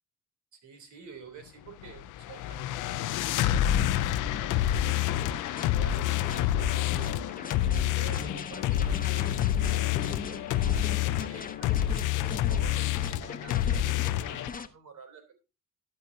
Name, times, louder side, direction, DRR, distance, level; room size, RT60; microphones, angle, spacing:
voice 1, 0.5-6.0 6.7-7.3 7.7-9.4 9.7-15.4, right 6 dB, 75° right, 6 dB, 3.3 m, -50 dB
sound 1, 1.8-14.5, left 12 dB, 85° left, 0.6 m, -28 dB
sound 2, 4.7-14.7, left 5 dB, 30° left, 1.0 m, -41 dB
13.0 x 9.8 x 2.7 m, 0.28 s
cardioid pair, 90°, 30 cm